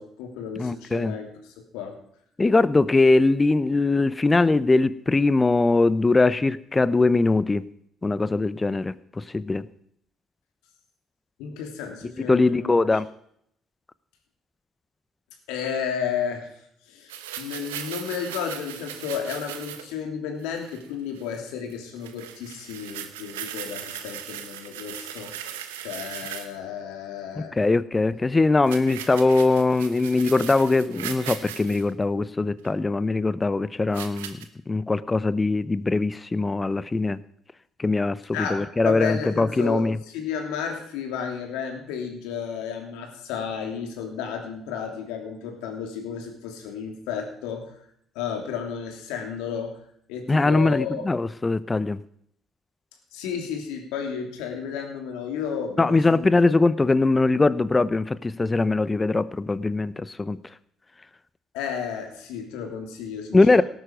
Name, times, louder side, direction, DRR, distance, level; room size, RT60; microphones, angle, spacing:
voice 1, 0.0-2.0 11.4-13.0 15.5-25.4 25.8-27.6 38.3-47.7 48.1-49.8 50.1-51.0 53.1-56.3 61.5-63.6, left 7 dB, 75° left, 3 dB, 2.9 m, -33 dB
voice 2, 0.6-1.1 2.4-7.7 8.0-9.7 12.3-13.1 27.4-34.4 34.7-37.2 37.8-40.0 50.3-52.0 55.8-60.4 63.3-63.6, left 3 dB, 25° left, 17 dB, 0.7 m, -21 dB
sound 1, 17.1-19.9 20.4-20.9 21.2-21.4 21.7-21.8 22.0-26.6 28.6-31.8 32.6-32.7 33.9-34.4, right 10 dB, 85° right, 1.1 m, -38 dB
18.0 x 9.2 x 5.2 m, 0.69 s
hypercardioid pair, 55°, 0 cm